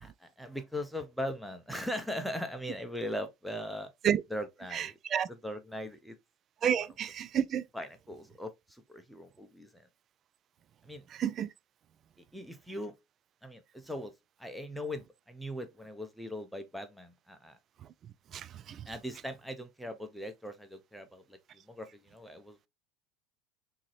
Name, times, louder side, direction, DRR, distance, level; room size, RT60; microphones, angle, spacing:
voice 1, 0.0-3.9 4.3-5.0 5.3-6.2 7.7-9.9 10.8-11.0 12.3-12.9 13.4-14.1 14.4-17.6 18.9-22.6, left 1 dB, ahead, 0.7 m, -40 dB
voice 2, 4.7-5.3 6.6-7.6 11.2-11.5 18.3-18.8, right 9 dB, 40° right, 0.3 m, -30 dB
3.6 x 2.7 x 3.2 m
hypercardioid pair, 80°, 0 cm